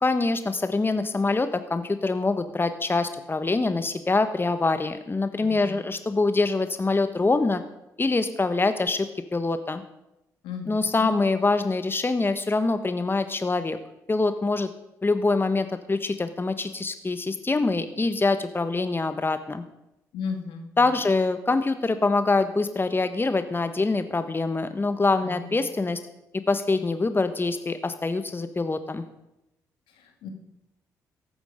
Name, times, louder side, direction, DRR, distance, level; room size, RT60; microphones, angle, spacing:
voice 1, 0.0-7.6 8.0-9.8 10.7-13.8 14.1-14.7 15.0-19.6 20.8-26.0 26.3-29.0, left 3 dB, 25° left, 10 dB, 1.3 m, -24 dB
voice 2, 5.4-5.8 10.4-11.1 20.1-20.9 25.2-25.5 29.9-30.3, left 5 dB, 75° left, 5 dB, 1.9 m, -35 dB
15.0 x 12.0 x 5.1 m, 0.89 s
hypercardioid pair, 45°, 8 cm